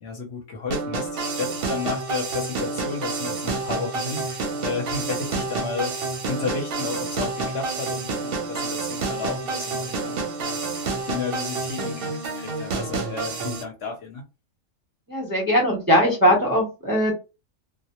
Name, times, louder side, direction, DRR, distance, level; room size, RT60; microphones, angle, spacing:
voice 1, 0.0-5.9 6.3-14.2, left 5 dB, 60° left, 0.8 m, -32 dB
sound 1, 0.7-13.6, right 3 dB, 60° right, 0.7 m, -29 dB
voice 2, 15.1-17.1, equal, 25° right, 0.5 m, -20 dB
2.1 x 2.1 x 2.8 m
omnidirectional pair, 1.3 m